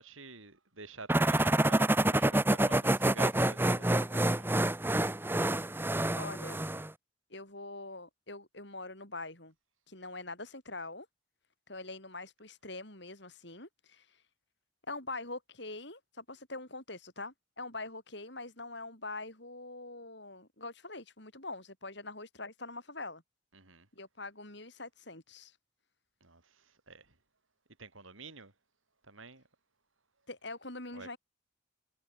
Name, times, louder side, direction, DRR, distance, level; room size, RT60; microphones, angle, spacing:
voice 1, 0.0-4.5 23.5-23.9 26.2-26.4 26.9-27.0 27.8-28.5 29.1-29.4 30.9-31.2, right 3 dB, 80° right, 6.7 m, -48 dB
sound 1, 1.1-6.9, right 1 dB, 10° right, 0.9 m, -27 dB
voice 2, 6.2-6.6 7.3-9.5 9.9-11.1 11.7-14.3 14.9-23.2 24.0-25.6 30.3-31.2, left 2 dB, 60° left, 7.6 m, -44 dB
head